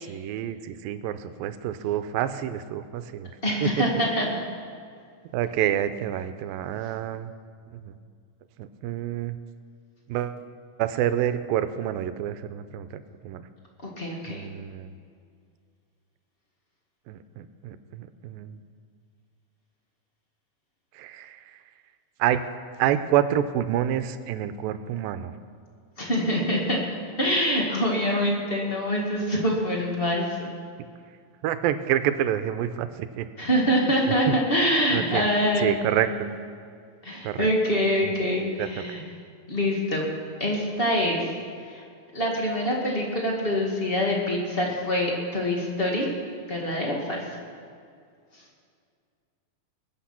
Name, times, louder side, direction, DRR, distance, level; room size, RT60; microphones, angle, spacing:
voice 1, 0.1-3.3 3.6-3.9 5.3-7.3 7.7-8.0 8.6-9.4 10.1-10.4 10.8-13.5 14.3-14.9 17.1-18.6 20.9-21.6 22.2-22.5 22.8-25.3 31.4-33.3 34.1-34.3 34.9-35.2 35.6-36.1 37.2-37.5 38.6-39.0, right 11 dB, 90° right, 11 dB, 2.4 m, -28 dB
voice 2, 3.4-4.4 13.8-14.5 26.0-26.8 27.2-30.5 33.4-35.8 36.1-36.2 37.0-39.0 39.5-40.1 40.4-41.3 41.6-41.8 42.1-46.1 46.5-47.4 48.3-48.4, equal, 25° left, -1 dB, 1.3 m, -25 dB
20.5 x 8.6 x 5.8 m, 2.2 s
omnidirectional pair, 4.1 m